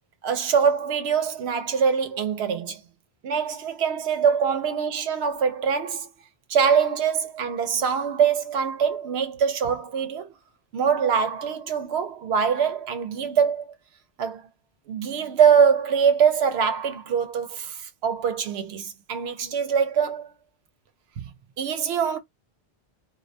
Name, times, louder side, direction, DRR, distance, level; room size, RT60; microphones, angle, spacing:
voice 1, 0.2-2.8 3.2-6.1 6.5-10.3 10.7-13.7 14.2-14.4 14.9-20.3 21.2-21.3 21.6-22.2, right 7 dB, 90° right, 0.8 m, -23 dB
2.2 x 2.2 x 2.6 m
omnidirectional pair, 1.0 m